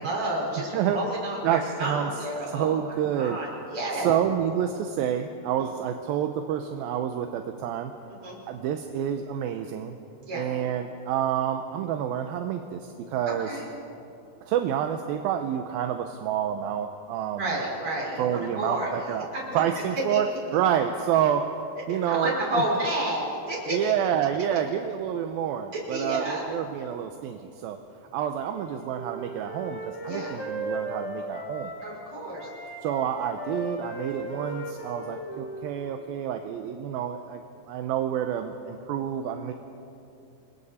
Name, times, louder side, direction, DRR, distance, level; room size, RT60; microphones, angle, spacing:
voice 1, 0.0-4.2 5.6-5.7 8.1-8.4 10.2-10.5 13.3-13.6 17.4-18.9 19.3-19.6 20.1-20.2 21.9-23.8 25.7-26.4 30.1-30.3 31.8-32.5, right 1 dB, 30° right, -3 dB, 5.7 m, -31 dB
voice 2, 1.4-2.1 2.5-3.4 4.0-7.9 8.5-9.9 10.3-13.5 14.5-17.5 18.2-19.3 19.5-20.3 20.5-21.5 21.9-22.6 23.7-27.8 28.1-31.7 32.8-37.4 37.7-39.5, right 9 dB, 75° right, 6 dB, 2.3 m, -28 dB
Wind instrument woodwind instrument, 28.5-32.0 32.4-36.1, right 1 dB, 30° left, 2.7 m, -37 dB
28.5 x 22.0 x 4.3 m, 2.7 s
omnidirectional pair, 4.7 m